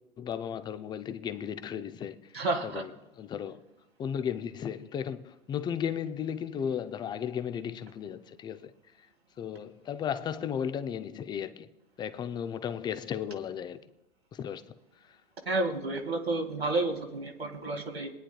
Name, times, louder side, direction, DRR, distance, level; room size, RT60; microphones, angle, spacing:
voice 1, 0.2-2.3 2.6-2.9 3.2-3.6 4.0-8.7 9.4-11.7 12.0-13.8 14.3-14.7, left 8 dB, 15° left, 0.5 m, -35 dB
voice 2, 2.3-2.8 15.5-18.1, right 2 dB, 85° right, 2.1 m, -30 dB
23.0 x 9.9 x 2.3 m
figure-of-eight pair, 100°, 30 cm